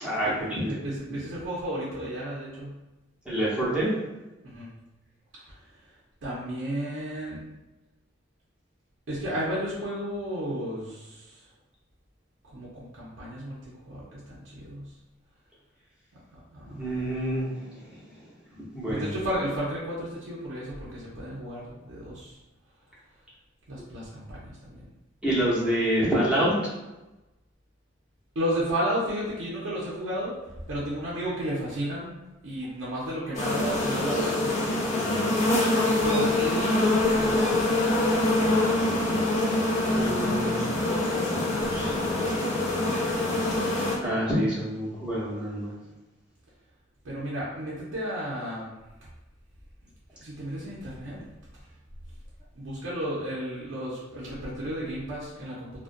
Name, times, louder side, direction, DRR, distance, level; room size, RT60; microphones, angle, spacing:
voice 1, 0.0-0.7 3.3-3.9 16.8-18.0 18.7-19.2 25.2-26.5 39.9-40.6 44.0-45.7, right 1 dB, 5° right, -8 dB, 0.7 m, -27 dB
voice 2, 0.7-2.8 4.4-4.7 6.2-7.4 9.1-11.4 12.5-14.9 16.5-17.0 18.9-22.4 23.7-24.9 28.4-30.4 30.7-32.2 32.4-35.0 35.6-37.7 40.7-42.1 47.0-48.7 50.2-51.2 52.6-55.8, equal, 70° right, -7 dB, 0.5 m, -33 dB
sound 1, 33.3-44.0, left 2 dB, 35° left, 0.5 m, -25 dB
2.4 x 2.2 x 2.5 m, 1.0 s
head